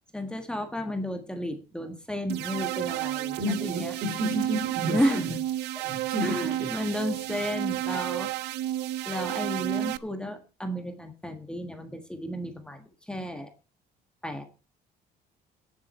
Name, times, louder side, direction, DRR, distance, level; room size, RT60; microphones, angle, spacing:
voice 1, 0.1-3.9 4.9-5.4 5.7-5.9 6.2-8.3 9.0-13.5 14.2-14.4, equal, 5° left, 6 dB, 1.6 m, -32 dB
sound 1, 2.3-10.0, right 14 dB, 85° right, 0.6 m, -31 dB
voice 2, 3.4-5.3 5.8-6.7 8.0-8.1, equal, 65° right, 5 dB, 4.5 m, -31 dB
17.5 x 7.5 x 4.3 m, 0.33 s
cardioid pair, 110°, 17 cm